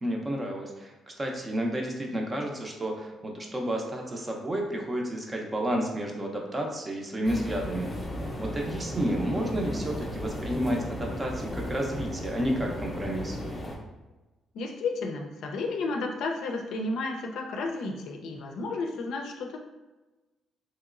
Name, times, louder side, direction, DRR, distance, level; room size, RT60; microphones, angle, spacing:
voice 1, 0.0-7.9 8.4-13.4, right 1 dB, 25° right, 1 dB, 0.6 m, -31 dB
sound 1, 7.2-13.8, equal, 25° left, 0.6 m, -35 dB
voice 2, 14.5-19.6, left 3 dB, 80° left, 2 dB, 0.4 m, -32 dB
3.0 x 2.9 x 2.4 m, 1.1 s
cardioid pair, 105°, 0 cm